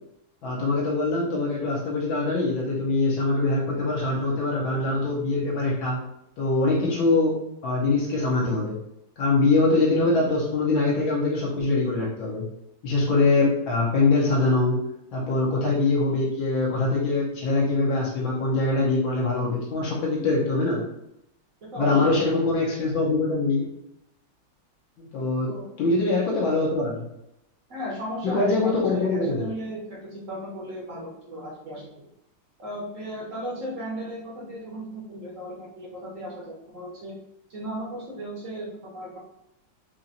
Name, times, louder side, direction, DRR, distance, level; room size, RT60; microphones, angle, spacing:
voice 1, 0.4-6.0 6.4-7.4 7.6-8.8 9.2-12.5 12.8-14.8 15.1-20.8 21.8-23.6 25.0-25.5 25.8-27.1 28.2-29.5, left 3 dB, 75° left, -4 dB, 1.6 m, -23 dB
voice 2, 21.6-22.2 25.4-25.7 27.7-32.0 32.6-37.2 37.5-39.2, equal, 55° right, -4 dB, 1.0 m, -36 dB
4.3 x 3.0 x 2.6 m, 0.82 s
omnidirectional pair, 2.2 m